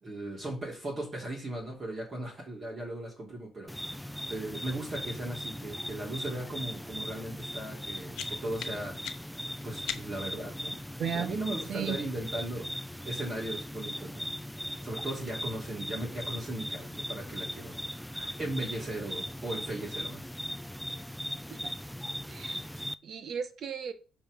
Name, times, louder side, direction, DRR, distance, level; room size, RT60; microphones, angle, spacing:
voice 1, 0.0-8.9 9.6-10.8 11.1-12.7 13.0-14.3 14.8-20.2, right 1 dB, 25° right, -3 dB, 3.0 m, -37 dB
sound 1, 3.7-22.9, equal, ahead, 0.4 m, -39 dB
sound 2, 8.1-10.4, left 10 dB, 75° left, 0.8 m, -43 dB
voice 2, 11.0-11.3 11.7-12.0 21.5-21.7 22.3-23.9, right 7 dB, 50° right, 11 dB, 1.2 m, -35 dB
5.8 x 5.5 x 6.5 m, 0.35 s
cardioid pair, 135°, 0 cm